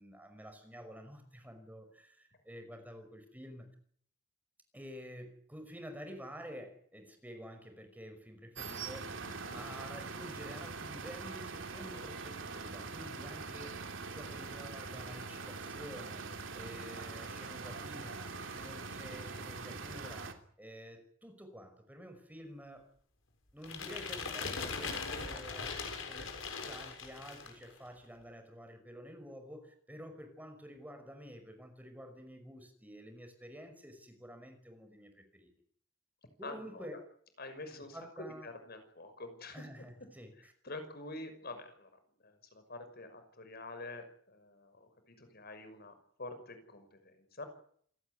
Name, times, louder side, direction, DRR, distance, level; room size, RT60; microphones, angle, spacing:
voice 1, 0.0-3.7 4.7-9.1 9.5-13.8 14.1-16.2 16.5-22.8 23.5-25.7 26.1-26.3 26.7-35.5 36.4-37.0 37.7-38.5 39.5-40.5, equal, 10° right, 7 dB, 5.5 m, -50 dB
sound 1, 8.5-20.3, right 4 dB, 70° right, 3.2 m, -43 dB
voice 2, 9.2-9.6 36.4-37.0 37.4-39.7 40.6-41.9 42.2-47.5, left 2 dB, 50° left, 8 dB, 5.8 m, -47 dB
sound 2, 23.6-27.6, left 4 dB, 85° left, 6.8 m, -40 dB
28.0 x 18.0 x 9.7 m, 0.62 s
head